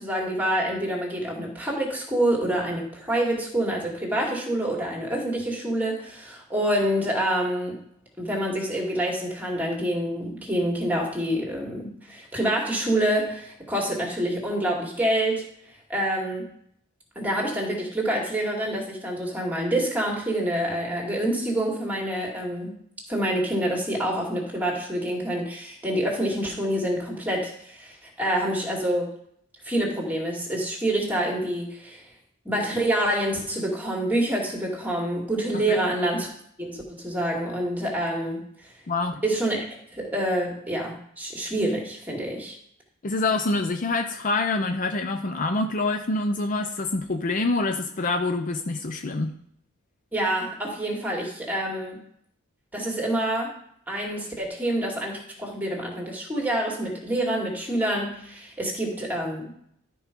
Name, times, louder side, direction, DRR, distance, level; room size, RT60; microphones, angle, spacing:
voice 1, 0.0-7.8 8.2-15.4 15.9-16.5 17.2-22.7 23.1-29.1 29.6-32.1 32.4-36.3 36.6-38.7 39.2-39.6 39.9-42.6 50.1-52.0 52.7-53.5 53.9-59.5, right 1 dB, 10° right, -1 dB, 2.3 m, -27 dB
voice 2, 38.9-39.2 43.0-49.3, left 3 dB, 40° left, 6 dB, 0.6 m, -26 dB
12.5 x 4.6 x 5.3 m, 0.70 s
head